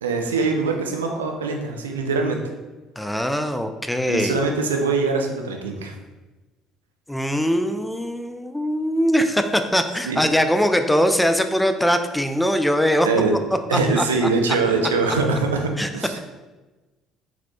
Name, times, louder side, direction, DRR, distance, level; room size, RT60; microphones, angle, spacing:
voice 1, 0.0-2.4 4.0-6.0 10.0-10.2 13.0-13.4 13.7-16.2, right 4 dB, 75° right, 3 dB, 0.4 m, -23 dB
voice 2, 3.0-4.4 7.1-13.1 13.7-14.0 15.8-15.9, equal, 5° left, 7 dB, 0.4 m, -21 dB
4.2 x 4.1 x 2.2 m, 1.2 s
figure-of-eight pair, 55°, 0 cm